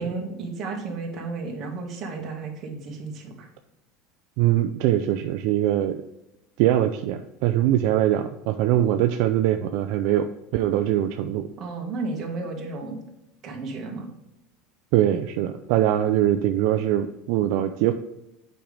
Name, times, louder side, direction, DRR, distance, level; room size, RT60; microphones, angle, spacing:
voice 1, 0.0-3.5 11.6-13.0 13.4-14.1, right 3 dB, 40° right, 1 dB, 1.7 m, -33 dB
voice 2, 4.4-6.0 6.6-11.5 14.9-17.9, right 12 dB, 65° right, 7 dB, 0.4 m, -22 dB
7.7 x 5.2 x 3.4 m, 0.90 s
supercardioid pair, 140°, 0 cm